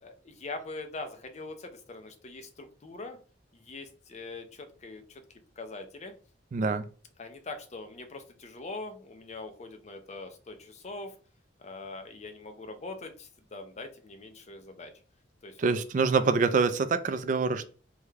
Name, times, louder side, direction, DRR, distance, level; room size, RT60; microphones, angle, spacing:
voice 1, 0.0-3.2 3.5-5.2 5.6-6.1 7.2-11.1 11.6-14.9 15.4-15.6, left 3 dB, 35° left, 6 dB, 0.5 m, -42 dB
voice 2, 6.5-6.9 15.6-17.6, right 4 dB, 45° right, 11 dB, 0.3 m, -25 dB
3.5 x 2.1 x 3.2 m, 0.39 s
head